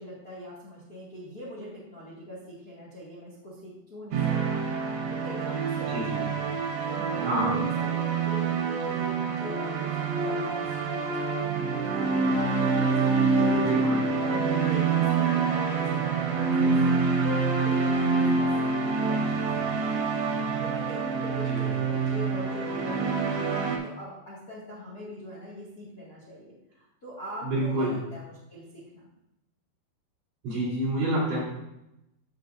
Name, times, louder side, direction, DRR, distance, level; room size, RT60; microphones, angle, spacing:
voice 1, 0.0-13.7 14.2-20.0 20.3-29.1, equal, 35° left, -6 dB, 1.7 m, -42 dB
sound 1, 4.1-23.8, right 4 dB, 85° right, 3.5 m, -26 dB
voice 2, 5.9-6.3 7.2-7.5 13.6-14.0 21.5-21.6 27.4-27.9 30.4-31.4, right 1 dB, 50° right, -6 dB, 4.0 m, -28 dB
sound 2, 6.1-7.0 7.4-18.5 19.0-19.1, left 5 dB, 75° left, 2.7 m, -44 dB
15.0 x 5.6 x 2.6 m, 0.86 s
omnidirectional pair, 4.8 m